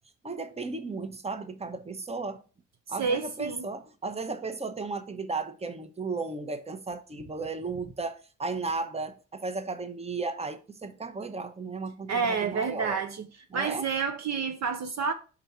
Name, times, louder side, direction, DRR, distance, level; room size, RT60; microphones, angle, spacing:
voice 1, 0.2-2.4 2.9-13.0 13.5-13.9, right 3 dB, 15° right, 0.9 m, -35 dB
voice 2, 3.0-3.7 12.1-13.3 13.5-15.1, right 5 dB, 45° right, 0.8 m, -29 dB
5.1 x 3.7 x 5.7 m
hypercardioid pair, 50°, 38 cm